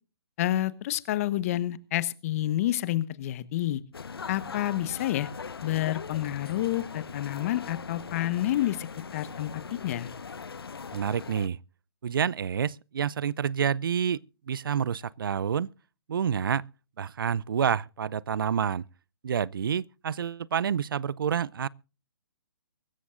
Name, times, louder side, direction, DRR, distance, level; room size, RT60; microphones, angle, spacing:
voice 1, 0.4-3.8 4.3-5.3 5.6-10.1, left 14 dB, 35° left, 1.1 m, -29 dB
sound 1, 3.9-11.5, left 5 dB, 75° left, 1.1 m, -40 dB
voice 2, 10.9-11.6 12.0-14.2 14.5-15.7 16.1-16.6 17.0-18.8 19.2-21.7, right 7 dB, 60° right, 0.6 m, -28 dB
24.0 x 14.0 x 2.5 m
figure-of-eight pair, 135°, 13 cm